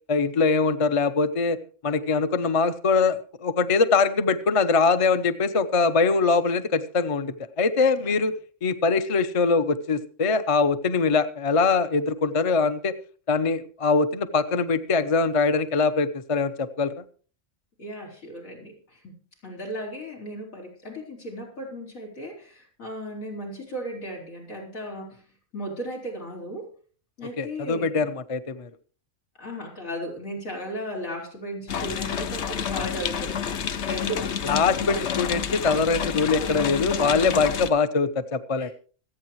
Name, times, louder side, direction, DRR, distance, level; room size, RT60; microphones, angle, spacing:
voice 1, 0.1-1.6 1.8-12.9 13.3-16.9 27.4-28.7 34.4-38.7, left 4 dB, 35° left, 11 dB, 0.7 m, -23 dB
voice 2, 17.8-19.1 19.4-25.2 25.5-26.7 27.2-28.0 29.4-34.3 38.6-38.7, equal, 85° left, -2 dB, 4.7 m, -36 dB
sound 1, 31.7-37.7, left 7 dB, 65° left, 1.0 m, -29 dB
26.0 x 8.7 x 3.1 m, 0.40 s
omnidirectional pair, 1.4 m